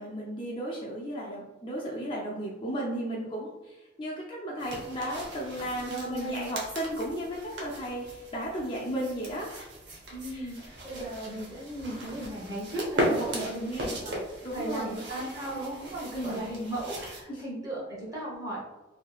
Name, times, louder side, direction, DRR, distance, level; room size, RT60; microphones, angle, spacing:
voice 1, 0.0-9.5 10.3-10.5 13.3-13.9 14.4-14.9 16.1-16.4 17.3-17.4, right 1 dB, 25° left, -4 dB, 0.5 m, -35 dB
sound 1, 4.6-17.2, right 1 dB, 65° right, 0.8 m, -37 dB
voice 2, 5.8-6.5 10.1-14.1 14.5-18.6, right 1 dB, 20° right, -6 dB, 1.1 m, -36 dB
3.0 x 2.8 x 2.3 m, 1.1 s
head